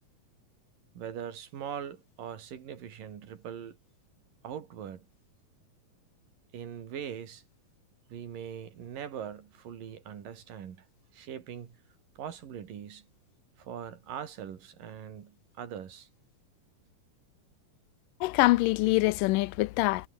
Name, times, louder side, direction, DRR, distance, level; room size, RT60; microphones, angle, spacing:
voice 1, 1.0-3.8 4.4-5.1 6.5-7.4 8.1-10.9 11.1-11.8 12.2-13.1 13.6-16.1, right 8 dB, 85° right, 4.2 m, -41 dB
voice 2, 18.2-20.1, left 20 dB, 90° left, 2.2 m, -24 dB
omnidirectional pair, 3.8 m